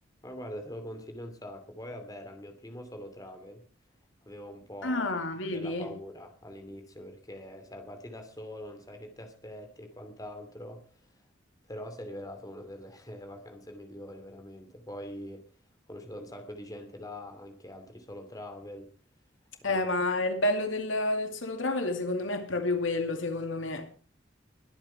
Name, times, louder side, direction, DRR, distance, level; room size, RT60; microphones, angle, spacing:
voice 1, 0.2-3.6 4.2-5.2 5.5-11.2 11.7-15.5 15.9-18.9 19.6-19.9, left 1 dB, 20° left, 2.7 m, -43 dB
voice 2, 4.8-5.9 19.6-23.9, left 2 dB, 90° left, 2.4 m, -29 dB
22.5 x 8.7 x 4.6 m
head